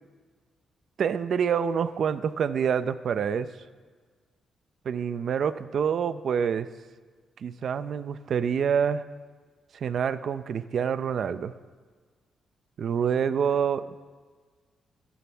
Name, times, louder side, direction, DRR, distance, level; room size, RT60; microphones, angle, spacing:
voice 1, 1.0-3.5 4.8-6.7 7.4-9.0 9.7-11.5 12.8-13.9, right 7 dB, 50° right, 13 dB, 0.5 m, -27 dB
25.0 x 11.5 x 3.5 m, 1.5 s
wide cardioid pair, 180°, 0 cm